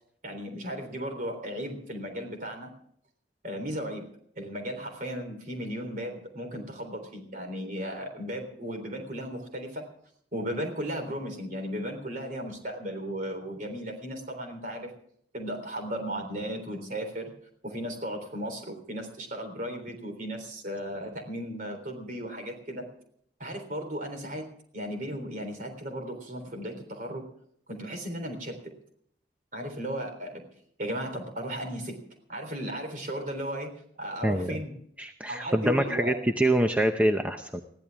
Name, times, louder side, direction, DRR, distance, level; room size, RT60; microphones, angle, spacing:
voice 1, 0.2-2.7 3.4-4.1 4.4-9.9 10.3-14.9 15.3-17.3 17.6-22.9 23.4-27.3 27.7-28.7 29.5-30.5 30.8-32.0 32.3-34.7 35.3-36.2, equal, 45° right, 5 dB, 3.7 m, -35 dB
voice 2, 34.2-34.6 35.0-37.6, right 1 dB, 10° right, 5 dB, 0.7 m, -25 dB
21.5 x 15.0 x 3.5 m, 0.65 s
head